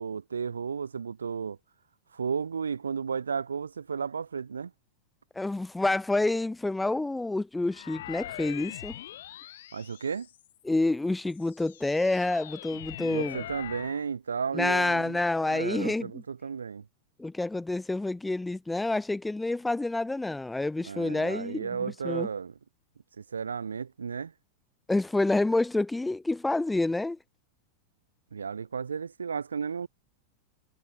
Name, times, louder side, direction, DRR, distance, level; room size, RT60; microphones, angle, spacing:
voice 1, 0.0-1.6 2.1-4.7 9.7-10.3 13.1-16.8 20.8-22.5 23.2-24.3 28.3-29.9, right 6 dB, 70° right, 1.7 m, -33 dB
voice 2, 5.4-9.0 10.6-13.4 14.5-16.2 17.2-22.3 24.9-27.2, left 2 dB, 5° left, 0.7 m, -28 dB
sound 1, 7.7-10.6 11.2-14.1, left 13 dB, 60° left, 2.9 m, -42 dB
figure-of-eight pair, 90°, 0 cm